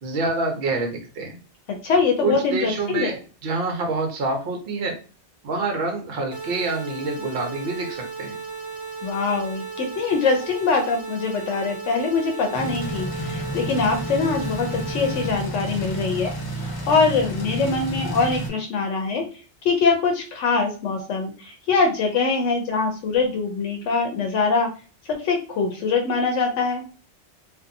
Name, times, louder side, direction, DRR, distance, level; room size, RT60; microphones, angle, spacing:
voice 1, 0.0-1.4 2.2-3.1 3.4-5.0 5.4-8.4, right 3 dB, 60° right, 3 dB, 0.8 m, -26 dB
voice 2, 1.7-3.1 9.0-16.3 16.9-19.3 19.6-24.7 25.1-26.8, left 4 dB, 85° left, 3 dB, 0.9 m, -23 dB
sound 1, 6.3-15.3, right 4 dB, 45° right, 0.3 m, -35 dB
sound 2, 12.5-18.5, equal, 35° left, 0.4 m, -30 dB
2.6 x 2.3 x 2.5 m, 0.37 s
omnidirectional pair, 1.2 m